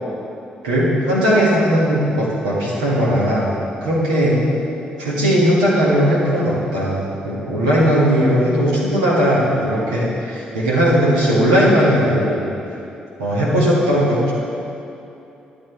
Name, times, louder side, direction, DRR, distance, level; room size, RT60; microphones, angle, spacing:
voice 1, 0.6-4.4 5.0-12.5 13.2-14.3, equal, 85° right, -7 dB, 2.0 m, -17 dB
11.0 x 7.9 x 4.7 m, 2.8 s
hypercardioid pair, 40°, 4 cm